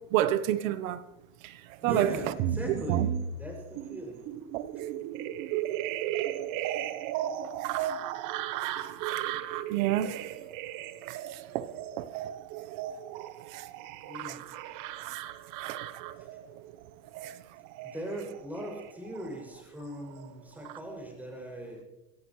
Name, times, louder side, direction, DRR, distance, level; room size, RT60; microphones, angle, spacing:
voice 1, 0.1-1.0 1.4-1.6 1.8-2.1 2.9-3.1 4.5-4.7 7.6-7.9 8.5-8.7 9.1-9.2 9.7-10.2 11.1-11.7 12.0-12.1 13.5-13.6 14.3-14.4 15.1-15.2 15.6-15.8 17.2-17.3, right 13 dB, 80° right, 1.1 m, -30 dB
voice 2, 1.8-4.3 14.0-14.5 15.8-15.9 16.2-16.3 17.8-21.8, equal, 5° right, 6.3 m, -40 dB
sound 1, 1.9-19.6 19.9-20.8, right 11 dB, 50° right, 1.0 m, -35 dB
24.5 x 15.0 x 3.2 m
supercardioid pair, 125°, 40 cm